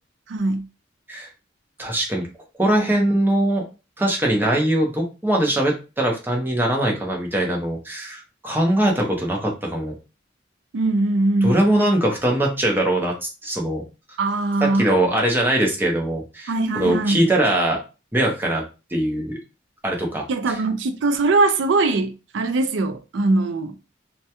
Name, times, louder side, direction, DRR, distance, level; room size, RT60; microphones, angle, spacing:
voice 1, 0.3-0.7 10.7-11.6 14.2-14.9 16.5-17.2 20.3-23.7, right 2 dB, 75° right, 0.4 m, -21 dB
voice 2, 1.8-2.2 2.6-3.6 4.0-10.0 11.4-13.1 13.4-13.8 14.6-17.8 18.1-18.6 18.9-19.4 19.8-20.2, right 1 dB, 10° right, 0.6 m, -21 dB
2.2 x 2.2 x 2.7 m
head